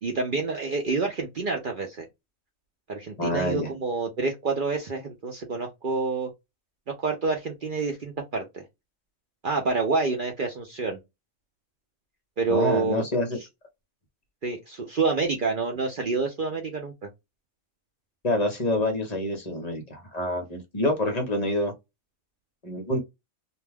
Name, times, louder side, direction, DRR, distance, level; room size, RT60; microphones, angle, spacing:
voice 1, 0.0-2.1 2.9-6.3 7.0-8.4 9.4-11.0 12.4-13.0 14.4-16.9, right 4 dB, 60° right, 0.5 m, -27 dB
voice 2, 3.2-3.7 12.5-13.4 18.2-21.7 22.6-23.0, left 1 dB, 35° left, 0.8 m, -27 dB
2.5 x 2.2 x 3.3 m
omnidirectional pair, 1.5 m